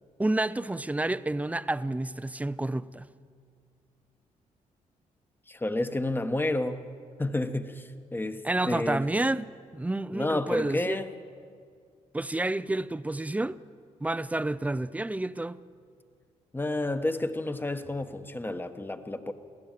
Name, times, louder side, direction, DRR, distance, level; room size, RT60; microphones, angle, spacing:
voice 1, 0.2-3.1 8.4-9.5 9.7-11.1 12.1-13.6 14.0-15.6, right 2 dB, 10° right, 0.5 m, -29 dB
voice 2, 5.5-6.8 7.2-8.4 8.7-9.0 10.1-11.0 16.5-19.3, left 2 dB, 15° left, 1.1 m, -30 dB
24.0 x 16.0 x 7.5 m
cardioid pair, 85°, 14 cm